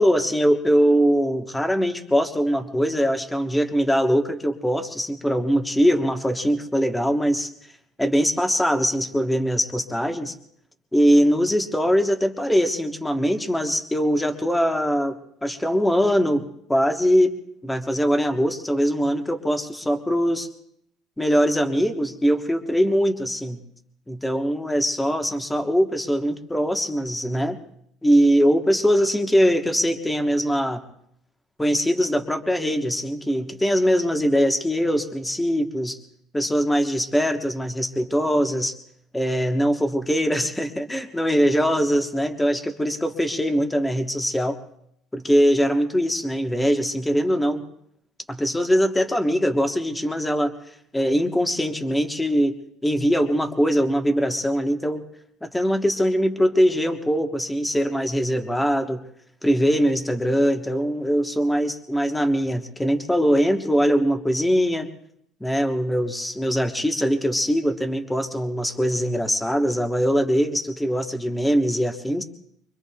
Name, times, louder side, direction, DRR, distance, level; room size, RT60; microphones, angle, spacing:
voice 1, 0.0-7.5 8.0-10.4 10.9-17.4 17.6-20.5 21.2-23.6 24.1-27.6 28.0-30.8 31.6-36.0 36.3-38.8 39.1-44.6 45.1-47.6 48.3-50.5 50.9-55.0 55.4-59.0 59.4-64.9 65.4-72.2, equal, 5° left, 5 dB, 1.2 m, -22 dB
25.0 x 23.5 x 2.3 m, 0.71 s
cardioid pair, 130°, 0 cm